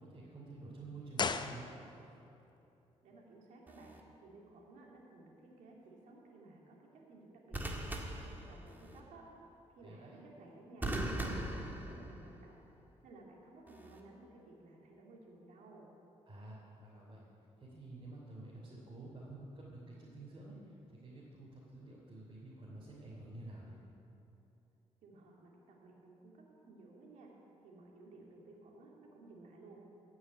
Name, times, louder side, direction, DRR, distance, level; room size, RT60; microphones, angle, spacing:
voice 1, 0.0-1.8 9.8-10.2 16.3-17.2 17.6-20.6 20.9-23.8, right 2 dB, 40° right, -6 dB, 3.1 m, -50 dB
sound 1, 1.1-2.2 2.5-2.6, left 5 dB, 35° left, 0.6 m, -37 dB
voice 2, 3.0-7.9 8.2-9.2 9.7-10.9 11.2-12.6 13.0-15.9 25.0-27.3 27.6-29.8, right 2 dB, 85° right, -2 dB, 2.2 m, -57 dB
sound 2, 3.7-4.0 7.5-9.0 10.8-12.5 13.7-14.0, right 1 dB, 15° right, 1.7 m, -40 dB
14.5 x 6.4 x 9.5 m, 3.0 s
cardioid pair, 85°, 12 cm